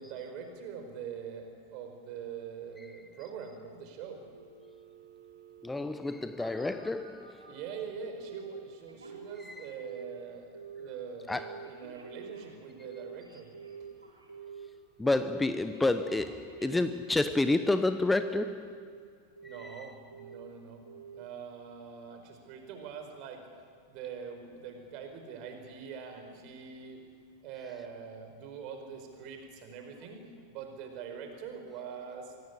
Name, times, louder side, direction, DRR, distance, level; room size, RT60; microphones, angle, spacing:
voice 1, 0.0-4.2 7.4-13.5 19.4-20.8 21.1-23.4 23.9-27.0 27.4-32.3, right 6 dB, 40° right, 5 dB, 4.8 m, -43 dB
Telephone, 4.3-7.6 8.2-8.6 8.9-10.2 10.5-10.9 11.3-14.7 15.0-15.4 15.7-17.8 18.1-19.0 19.4-19.7 20.1-20.5 20.9-21.2 21.6-21.7, right 6 dB, 80° right, 4.8 m, -47 dB
voice 2, 5.6-7.5 9.4-9.7 11.3-11.8 15.0-18.9 19.4-19.9, left 2 dB, 10° left, 11 dB, 0.8 m, -30 dB
25.0 x 17.5 x 10.0 m, 2.2 s
figure-of-eight pair, 90°, 0 cm